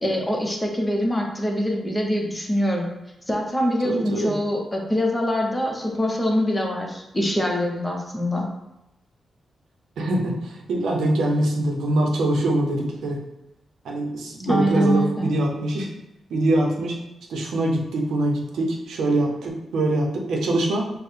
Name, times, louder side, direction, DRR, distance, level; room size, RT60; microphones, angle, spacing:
voice 1, 0.0-2.9 3.3-8.4 14.4-15.3, equal, 15° left, 0 dB, 0.7 m, -24 dB
voice 2, 3.8-4.3 10.0-13.2 13.8-15.9 16.3-17.0 17.3-20.8, right 1 dB, 85° right, 0 dB, 0.6 m, -23 dB
4.5 x 2.1 x 3.3 m, 0.91 s
cardioid pair, 80°, 0 cm